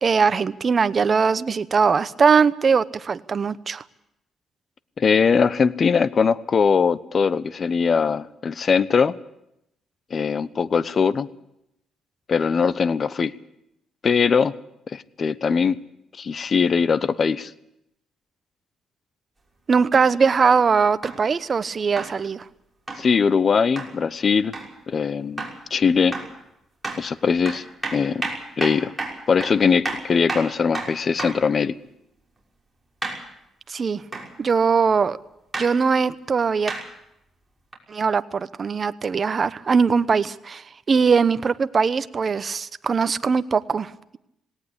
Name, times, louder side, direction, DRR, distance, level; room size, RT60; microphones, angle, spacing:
voice 1, 0.0-3.8 19.7-22.4 33.7-34.0 34.4-35.2 35.6-36.7 37.9-44.2, right 5 dB, 40° right, 13 dB, 0.9 m, -21 dB
voice 2, 5.0-9.1 10.1-11.3 12.3-13.3 14.0-14.5 14.9-15.8 16.2-17.5 23.0-24.5 24.9-26.2 27.0-27.6 27.9-28.3 28.6-28.9 29.3-31.7, left 5 dB, 45° left, 16 dB, 0.9 m, -21 dB
sound 1, 19.9-20.1 21.0-21.2 22.0-22.1 22.9-23.1 23.8-23.9 24.5-24.7 25.4-25.6 26.1-26.4 26.8-27.0 27.5-31.5 33.0-33.3 34.1-34.3 35.5-35.7 36.7-36.9 37.7-37.8, right 2 dB, 10° right, 6.0 m, -31 dB
18.5 x 18.5 x 8.2 m, 0.83 s
cardioid pair, 90°, 0 cm